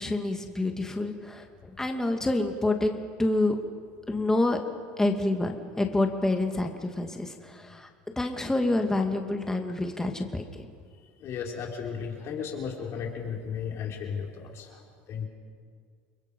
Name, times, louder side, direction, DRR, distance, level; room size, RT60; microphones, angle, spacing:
voice 1, 0.0-3.6 4.1-4.6 5.0-7.9 8.2-10.4, left 2 dB, 10° left, 4 dB, 2.3 m, -27 dB
voice 2, 11.2-14.8 15.1-15.3, left 7 dB, 50° left, 0 dB, 5.2 m, -35 dB
30.0 x 22.0 x 5.5 m, 2.1 s
supercardioid pair, 95°, 6 cm